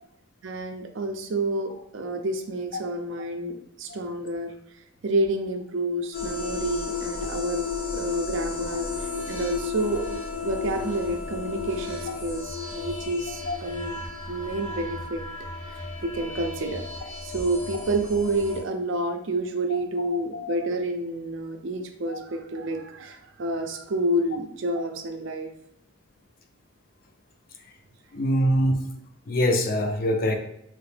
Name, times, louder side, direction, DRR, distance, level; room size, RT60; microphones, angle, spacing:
voice 1, 0.4-4.5 5.0-8.9 9.3-10.1 10.4-14.0 14.3-15.2 16.0-16.8 17.2-25.5, right 1 dB, 60° right, 5 dB, 0.4 m, -29 dB
sound 1, 6.1-18.6, left 4 dB, 65° left, 1.3 m, -33 dB
voice 2, 20.1-20.6 22.1-22.2 28.1-28.8 29.3-30.4, equal, 40° left, 4 dB, 0.4 m, -24 dB
3.1 x 2.9 x 3.2 m, 0.77 s
head